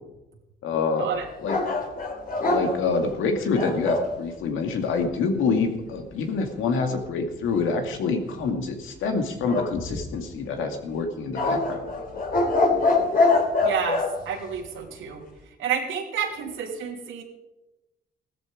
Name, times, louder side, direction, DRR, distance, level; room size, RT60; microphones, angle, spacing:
voice 1, 0.6-1.1 1.4-1.6 2.4-12.3, left 4 dB, 85° left, 5 dB, 2.3 m, -26 dB
sound 1, 1.5-4.1 9.5-10.3 11.3-14.1, left 3 dB, 45° left, 3.6 m, -24 dB
voice 2, 13.6-15.2 15.6-17.2, right 7 dB, 85° right, 2 dB, 3.1 m, -30 dB
15.5 x 13.5 x 5.2 m, 0.97 s
cardioid pair, 90°, 20 cm